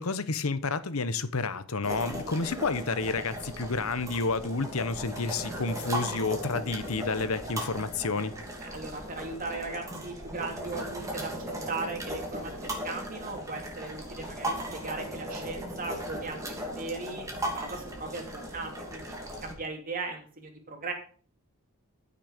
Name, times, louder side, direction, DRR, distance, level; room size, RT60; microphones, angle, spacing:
voice 1, 0.0-8.3, left 3 dB, 80° left, 1.0 m, -30 dB
sound 1, 1.8-19.5, equal, 15° right, 2.9 m, -37 dB
voice 2, 8.6-19.1 19.4-20.9, right 3 dB, 40° right, 2.9 m, -38 dB
14.5 x 6.6 x 5.1 m
head